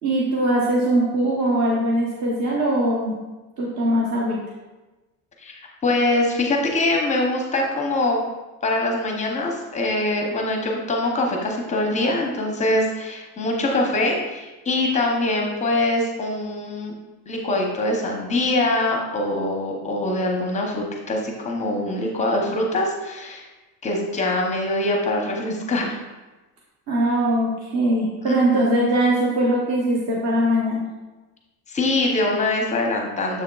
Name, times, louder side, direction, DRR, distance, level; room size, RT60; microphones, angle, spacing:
voice 1, 0.0-3.1 3.6-4.4 26.9-30.8, right 1 dB, 40° right, -4 dB, 0.9 m, -21 dB
voice 2, 5.4-8.2 8.6-16.9 17.3-23.5 23.8-26.0 28.3-28.7 31.7-33.4, left 2 dB, 15° left, 1 dB, 0.6 m, -23 dB
7.1 x 6.3 x 2.3 m, 1.1 s
cardioid pair, 165°, 42 cm